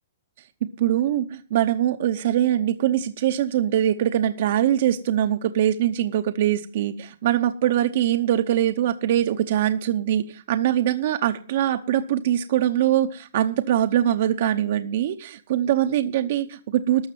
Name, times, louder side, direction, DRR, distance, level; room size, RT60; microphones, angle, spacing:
voice 1, 0.8-17.1, right 11 dB, 55° right, 7 dB, 0.8 m, -22 dB
13.0 x 6.5 x 9.1 m, 0.43 s
hypercardioid pair, 145°, 0 cm